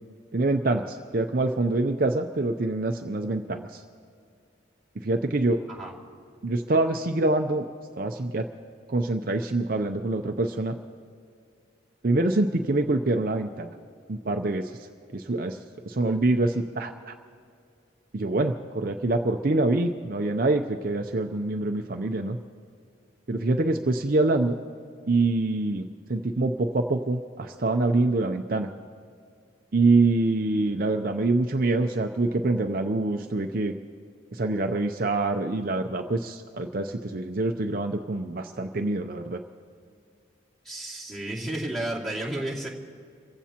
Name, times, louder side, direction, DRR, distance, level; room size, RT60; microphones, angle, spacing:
voice 1, 0.3-3.8 5.0-5.6 6.4-7.6 8.0-8.5 8.9-10.8 12.0-13.7 14.1-14.9 15.1-15.6 15.8-17.1 18.1-22.4 23.3-24.6 25.1-28.7 29.7-33.7 34.3-39.4, right 2 dB, 50° right, 5 dB, 0.6 m, -25 dB
voice 2, 40.6-42.7, right 1 dB, ahead, -3 dB, 2.4 m, -32 dB
27.5 x 15.5 x 2.9 m, 2.3 s
head